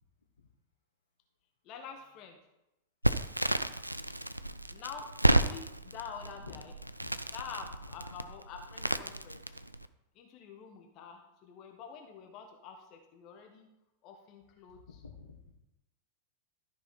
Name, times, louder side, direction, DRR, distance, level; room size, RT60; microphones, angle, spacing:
voice 1, 1.6-2.4 4.7-6.7 7.3-9.4 10.1-13.7 14.0-14.8, left 6 dB, 40° left, 3 dB, 1.3 m, -47 dB
Crackle, 3.0-9.9, right 1 dB, 85° right, 0.4 m, -32 dB
voice 2, 4.5-4.9 6.4-6.6 7.0-7.4 7.9-8.0 14.4-15.5, left 5 dB, 75° left, 0 dB, 1.3 m, -53 dB
13.0 x 5.5 x 4.3 m, 0.90 s
figure-of-eight pair, 90°, 0 cm